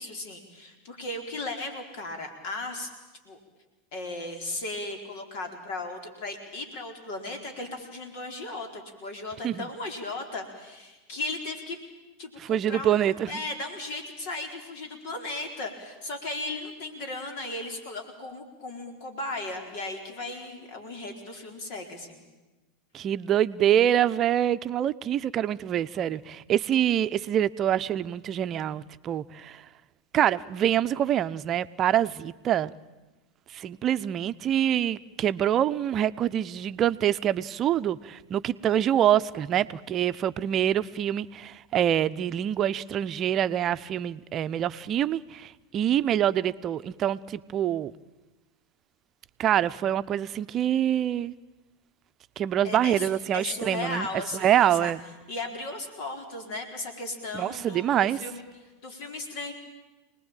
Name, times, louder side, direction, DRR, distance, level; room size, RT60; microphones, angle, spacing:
voice 1, 0.0-2.9 3.2-3.4 3.9-11.8 12.2-22.3 52.6-54.9 55.3-58.4 58.8-59.5, left 2 dB, 60° left, 4.4 m, -36 dB
voice 2, 12.4-13.3 22.9-29.6 30.1-32.7 33.5-47.9 49.4-51.3 52.4-54.1 54.3-55.0 57.3-58.2, right 10 dB, 35° right, 0.8 m, -25 dB
28.0 x 20.0 x 9.0 m
figure-of-eight pair, 90°, 0 cm